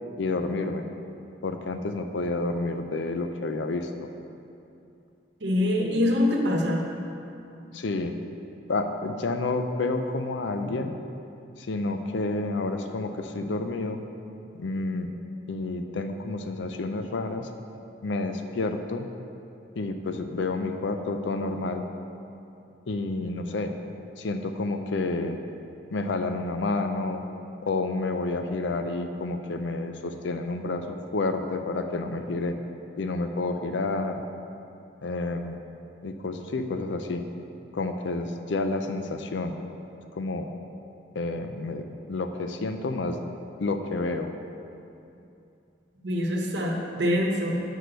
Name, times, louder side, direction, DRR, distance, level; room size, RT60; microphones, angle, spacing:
voice 1, 0.2-0.9 1.4-4.1 7.7-8.1 8.7-11.0 11.6-14.0 14.6-15.1 15.5-17.5 18.0-19.1 19.8-21.9 22.9-23.7 24.2-25.4 25.9-27.2 27.6-32.6 33.0-34.2 35.0-35.6 36.0-37.2 37.7-39.6 40.1-40.5 41.1-43.2 43.6-44.3, left 3 dB, 80° left, 6 dB, 0.5 m, -29 dB
voice 2, 5.4-6.8 46.0-47.6, left 1 dB, 70° right, 0 dB, 1.0 m, -24 dB
6.0 x 4.9 x 6.6 m, 2.7 s
head